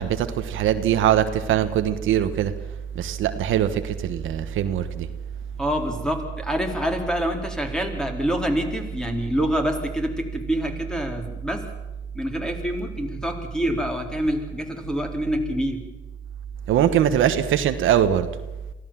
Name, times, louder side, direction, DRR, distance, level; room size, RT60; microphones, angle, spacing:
voice 1, 0.0-2.5 2.9-5.1 16.7-18.3, right 10 dB, 80° right, 9 dB, 1.3 m, -22 dB
voice 2, 5.6-11.6 12.1-15.8, equal, 5° left, 3 dB, 4.0 m, -26 dB
23.0 x 15.5 x 7.5 m, 1.1 s
cardioid pair, 90°, 20 cm